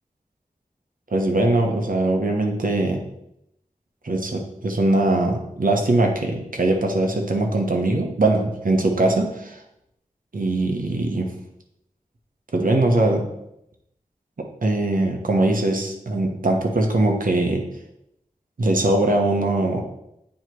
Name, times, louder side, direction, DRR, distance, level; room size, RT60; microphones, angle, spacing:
voice 1, 1.1-3.0 4.0-9.6 10.3-11.3 12.5-13.3 14.6-17.6 18.6-19.8, right 2 dB, 70° right, 2 dB, 1.2 m, -21 dB
9.0 x 3.1 x 4.6 m, 0.82 s
wide cardioid pair, 50°, 15 cm